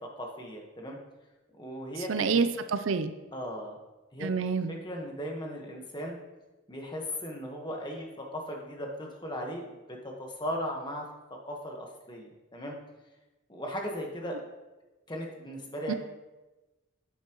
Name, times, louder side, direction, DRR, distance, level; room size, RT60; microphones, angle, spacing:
voice 1, 0.0-1.0 1.6-2.4 3.3-3.8 4.1-4.3 4.7-6.2 6.7-11.1 11.5-12.8 13.5-14.4 15.1-15.9, equal, 20° left, 1 dB, 1.3 m, -37 dB
voice 2, 2.1-3.1 4.2-4.7 15.9-16.0, right 5 dB, 80° right, 11 dB, 0.5 m, -27 dB
9.7 x 8.4 x 3.0 m, 1.1 s
head